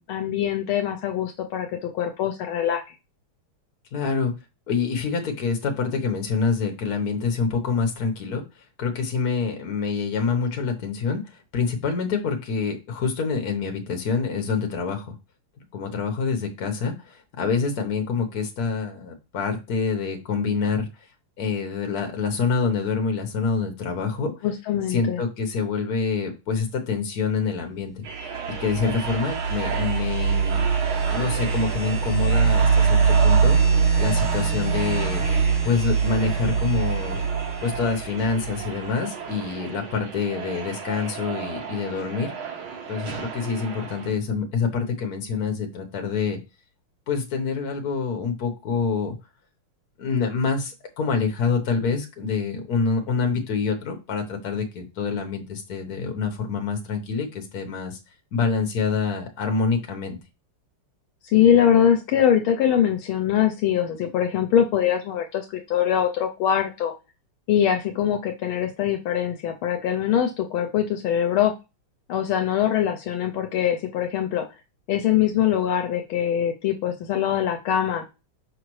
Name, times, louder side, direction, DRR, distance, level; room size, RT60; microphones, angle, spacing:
voice 1, 0.0-2.8 24.4-25.2 61.2-66.9 67.5-71.5 72.1-74.4 74.9-78.0, left 9 dB, 75° left, 5 dB, 1.5 m, -23 dB
voice 2, 3.9-4.3 4.7-8.4 8.8-11.2 11.5-15.1 15.7-20.9 21.4-24.3 24.9-28.0 28.6-30.6 31.0-35.2 35.6-37.2 37.6-42.3 42.9-46.4 47.1-49.1 50.0-58.0 58.3-60.2, left 5 dB, 50° left, 4 dB, 1.5 m, -26 dB
sound 1, 28.0-44.1, right 6 dB, 70° right, 1.8 m, -33 dB
sound 2, 28.3-38.9, right 5 dB, 10° right, 2.3 m, -23 dB
6.0 x 4.9 x 3.2 m, 0.27 s
omnidirectional pair, 2.4 m